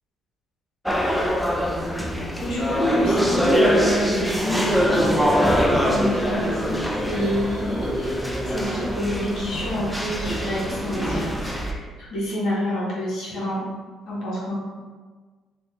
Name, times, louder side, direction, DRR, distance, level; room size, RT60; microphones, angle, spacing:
sound 1, 0.9-11.7, equal, ahead, 0.4 m, -23 dB
voice 1, 2.4-8.2 8.5-13.6 14.1-14.6, equal, 70° left, -7 dB, 1.3 m, -27 dB
2.6 x 2.5 x 3.3 m, 1.4 s
cardioid pair, 95°, 0 cm